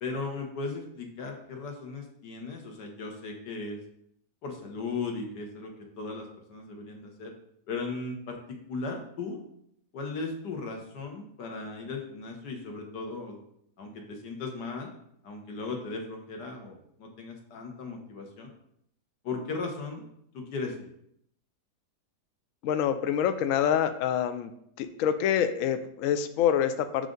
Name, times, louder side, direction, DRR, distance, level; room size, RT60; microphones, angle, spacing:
voice 1, 0.0-3.8 4.4-7.3 7.7-8.4 8.7-9.4 9.9-13.4 13.8-14.9 15.2-18.5 19.2-20.0 20.3-20.9, left 3 dB, 85° left, 2 dB, 1.8 m, -37 dB
voice 2, 22.6-24.5 24.8-27.1, left 9 dB, 70° left, 9 dB, 0.8 m, -26 dB
6.4 x 5.0 x 3.8 m, 0.72 s
omnidirectional pair, 1.8 m